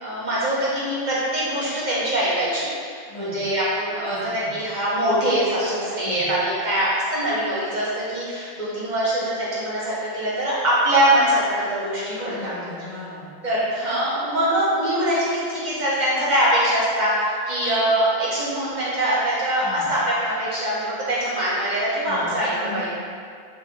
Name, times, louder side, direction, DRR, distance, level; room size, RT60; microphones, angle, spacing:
voice 1, 0.0-12.5 13.4-22.9, right 1 dB, 50° right, -7 dB, 0.7 m, -23 dB
voice 2, 3.1-3.4 4.1-4.5 6.0-6.3 12.3-13.3 19.6-19.9 22.0-22.9, left 2 dB, 40° left, -9 dB, 0.7 m, -37 dB
4.2 x 2.5 x 2.7 m, 2.2 s
omnidirectional pair, 1.1 m